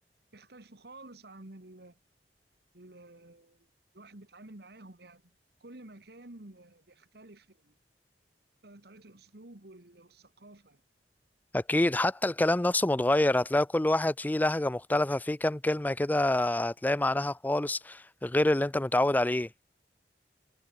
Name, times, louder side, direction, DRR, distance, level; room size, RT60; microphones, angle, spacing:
voice 1, 0.3-2.0 2.7-3.7 3.9-5.3 5.6-7.7 8.6-10.8, right 2 dB, 65° right, 1.9 m, -51 dB
voice 2, 11.5-19.5, left 1 dB, 10° left, 0.4 m, -27 dB
head